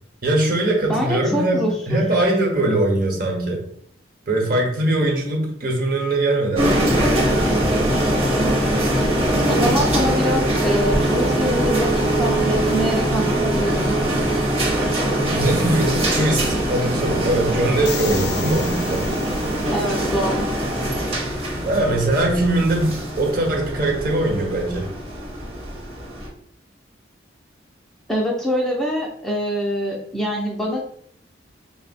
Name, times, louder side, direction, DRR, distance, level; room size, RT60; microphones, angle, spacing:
voice 1, 0.2-3.6 4.3-7.9 15.3-19.1 21.6-24.9, right 1 dB, 50° right, 0 dB, 1.0 m, -21 dB
voice 2, 0.9-2.0 9.5-14.0 19.7-20.5 28.1-30.8, equal, ahead, -3 dB, 0.5 m, -24 dB
sound 1, 6.6-26.3, right 1 dB, 30° right, 0.9 m, -22 dB
sound 2, 17.8-20.1, left 9 dB, 60° left, 0.4 m, -35 dB
3.9 x 2.0 x 4.1 m, 0.65 s
head